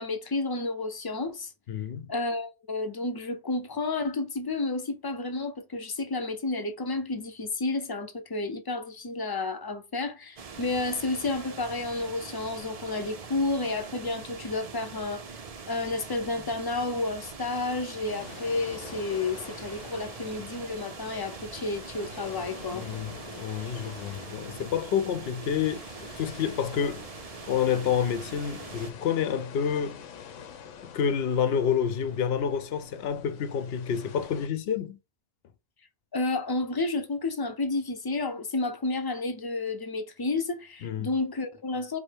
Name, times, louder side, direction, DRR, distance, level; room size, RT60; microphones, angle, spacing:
voice 1, 0.0-1.5 2.1-15.2 15.7-22.8 36.1-42.0, left 3 dB, 35° left, 0.3 m, -31 dB
voice 2, 1.7-2.1 22.7-27.1 27.4-30.1 30.8-35.0 40.8-41.1, left 8 dB, 65° left, 0.7 m, -29 dB
sound 1, 10.4-28.9, right 5 dB, 40° right, 0.5 m, -43 dB
sound 2, 18.1-34.5, left 7 dB, 90° left, 1.0 m, -47 dB
4.9 x 2.1 x 4.5 m
omnidirectional pair, 1.2 m